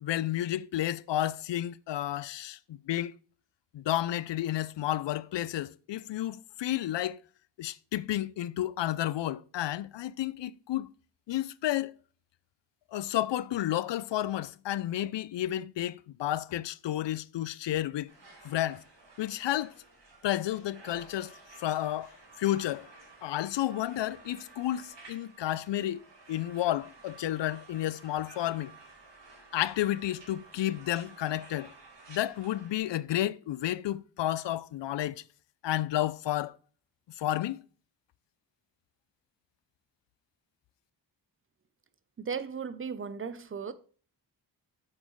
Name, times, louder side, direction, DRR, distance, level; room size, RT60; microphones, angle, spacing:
voice 1, 0.0-3.1 3.7-7.2 7.6-10.9 11.3-11.9 12.9-18.1 18.4-18.8 19.2-19.7 20.2-22.9 23.2-26.0 26.3-28.7 29.5-31.7 32.1-35.2 35.6-36.6 37.2-37.6, left 13 dB, 80° left, 0.5 m, -31 dB
sound 1, 18.1-32.8, right 3 dB, 85° right, 4.6 m, -53 dB
voice 2, 42.2-43.7, right 6 dB, 30° right, 0.6 m, -36 dB
8.6 x 6.4 x 3.1 m
wide cardioid pair, 155°, 42 cm